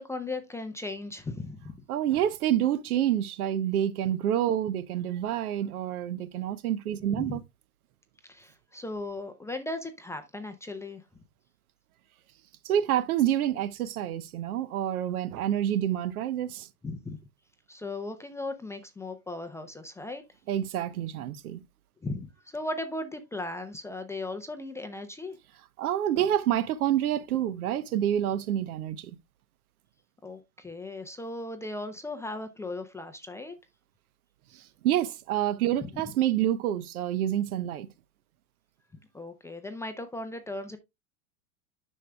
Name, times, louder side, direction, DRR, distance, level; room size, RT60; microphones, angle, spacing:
voice 1, 0.0-1.8 7.1-7.4 8.3-11.0 16.8-17.2 17.7-20.2 22.0-25.4 30.2-33.5 35.8-35.9 39.1-40.8, left 2 dB, 5° left, 0.5 m, -37 dB
voice 2, 1.9-7.4 12.6-16.7 20.5-21.6 25.8-29.1 34.5-37.9, right 11 dB, 70° right, 0.9 m, -28 dB
10.0 x 6.4 x 2.2 m
hypercardioid pair, 120°, 45 cm